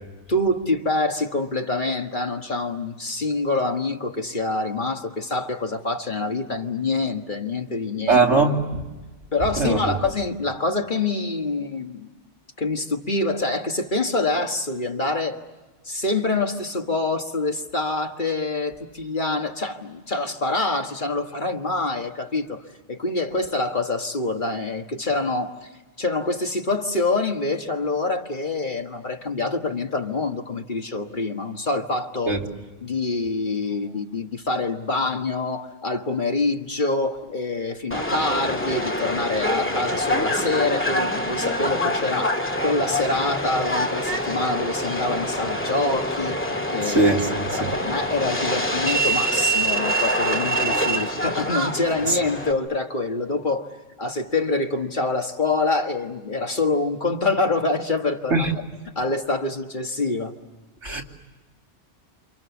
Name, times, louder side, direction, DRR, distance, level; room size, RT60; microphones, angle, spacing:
voice 1, 0.3-8.2 9.3-12.1 12.6-15.4 15.9-22.6 22.9-25.7 26.0-32.4 32.8-42.3 42.6-47.1 47.5-53.7 54.0-58.6 59.0-60.3, left 3 dB, 40° left, 1.7 m, -26 dB
voice 2, 8.1-8.6 9.6-9.9 32.2-32.4 46.9-47.8 58.3-58.5 60.8-61.0, right 3 dB, 70° right, 3.2 m, -20 dB
Subway metro underground, 37.9-52.5, equal, 10° left, 2.0 m, -25 dB
29.0 x 28.5 x 7.2 m
omnidirectional pair, 1.2 m